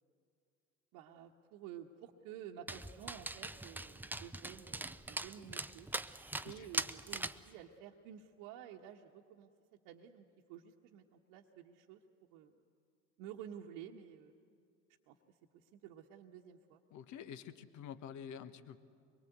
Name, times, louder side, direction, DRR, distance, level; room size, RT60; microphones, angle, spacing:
voice 1, 0.9-5.9 6.4-9.5 9.8-11.0 11.3-12.0 12.3-12.6 13.2-14.3 15.1-15.2 15.7-16.8, right 9 dB, 60° right, -1 dB, 1.3 m, -51 dB
Dog, 2.7-7.5, right 2 dB, 5° right, 0.6 m, -42 dB
voice 2, 16.9-18.8, left 8 dB, 50° left, 12 dB, 1.3 m, -48 dB
24.0 x 22.5 x 8.1 m, 2.4 s
figure-of-eight pair, 65°, 38 cm